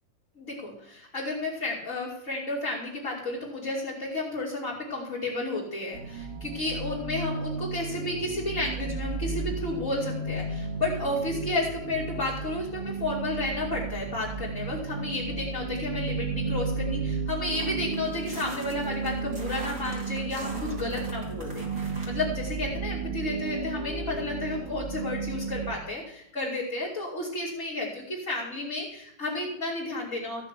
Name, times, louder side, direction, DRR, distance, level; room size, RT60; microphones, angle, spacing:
voice 1, 0.4-30.5, left 2 dB, 25° left, -6 dB, 2.8 m, -32 dB
sound 1, 5.9-25.7, right 4 dB, 75° right, 3.7 m, -33 dB
sound 2, 17.5-22.1, right 1 dB, 25° right, 3.0 m, -43 dB
15.5 x 6.3 x 8.3 m, 0.77 s
omnidirectional pair, 3.7 m